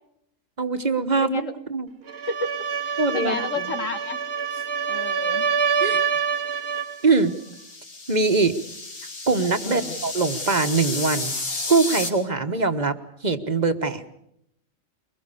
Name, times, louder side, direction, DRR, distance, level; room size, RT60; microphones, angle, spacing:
voice 1, 0.6-1.4 1.7-1.9 3.0-3.7 5.8-6.0 7.0-7.4 8.1-8.5 9.3-11.3 11.7-12.9 13.2-14.2, right 3 dB, 35° right, 8 dB, 1.5 m, -22 dB
voice 2, 1.2-1.5 2.3-2.5 2.8-4.2 4.9-5.4 9.6-10.0, left 3 dB, 70° left, 8 dB, 2.1 m, -31 dB
sound 1, 2.1-7.0, right 6 dB, 50° right, 1.3 m, -26 dB
sound 2, 7.0-12.1, left 3 dB, 90° left, 3.1 m, -32 dB
24.0 x 21.0 x 7.0 m, 0.75 s
omnidirectional pair, 1.3 m